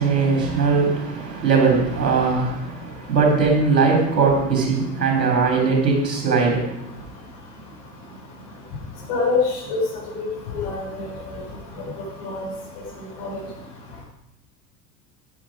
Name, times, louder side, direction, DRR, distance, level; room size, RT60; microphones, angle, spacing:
voice 1, 0.0-6.7, right 4 dB, 70° right, 1 dB, 3.8 m, -20 dB
voice 2, 9.1-9.4 9.7-9.8 10.2-10.3 10.5-11.1 12.2-12.5 13.2-13.4, left 4 dB, 50° left, -2 dB, 5.0 m, -24 dB
12.5 x 10.0 x 5.1 m, 0.87 s
figure-of-eight pair, 75°, 50 cm